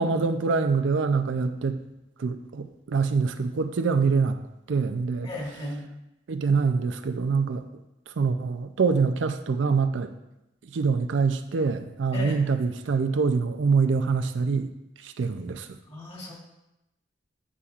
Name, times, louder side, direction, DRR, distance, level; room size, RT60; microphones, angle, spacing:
voice 1, 0.0-1.8 2.2-4.4 4.7-5.3 6.3-7.6 8.2-10.1 10.7-14.7 15.2-15.7, right 4 dB, 75° right, 9 dB, 0.5 m, -25 dB
voice 2, 5.2-5.9 12.1-12.5 15.9-16.3, left 1 dB, 30° left, -2 dB, 2.0 m, -35 dB
9.7 x 7.0 x 2.4 m, 0.91 s
head